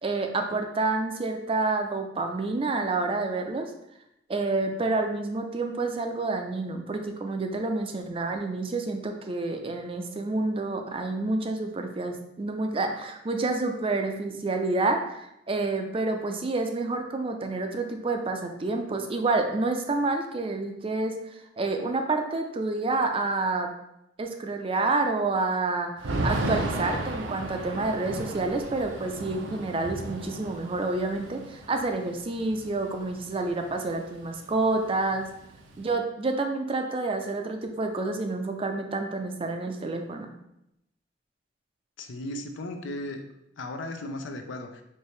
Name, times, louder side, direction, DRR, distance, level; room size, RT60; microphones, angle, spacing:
voice 1, 0.0-3.7 4.3-21.2 21.6-23.7 24.2-35.3 35.8-40.3, right 3 dB, 30° right, 4 dB, 0.4 m, -28 dB
Thunder / Rain, 26.0-33.9 34.2-34.3 34.5-35.9, right 2 dB, 80° right, 0.6 m, -34 dB
voice 2, 42.0-43.2 43.6-44.8, left 1 dB, 80° left, 6 dB, 0.5 m, -36 dB
4.5 x 2.8 x 3.2 m, 0.82 s
head